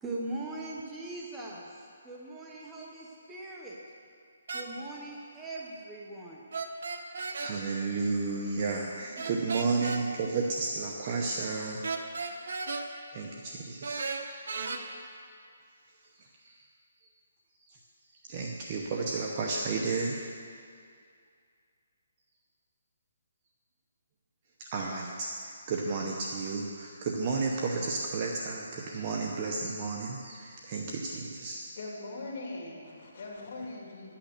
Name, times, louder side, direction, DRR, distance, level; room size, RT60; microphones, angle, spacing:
voice 1, 0.0-3.8 4.5-6.4 9.2-9.9, right 2 dB, 5° right, -4 dB, 1.0 m, -41 dB
sound 1, 4.5-4.7 6.5-7.5 9.2-10.0 11.8-12.8 13.8-14.8, right 4 dB, 65° right, 1.1 m, -34 dB
voice 2, 7.4-11.9 13.1-14.0 16.2-16.6 17.7-17.8 18.2-20.2 24.6-31.6, right 4 dB, 30° right, 0 dB, 0.9 m, -32 dB
voice 3, 31.8-34.1, left 2 dB, 45° left, -2 dB, 2.9 m, -41 dB
11.5 x 8.7 x 6.8 m, 2.3 s
hypercardioid pair, 165°, 0 cm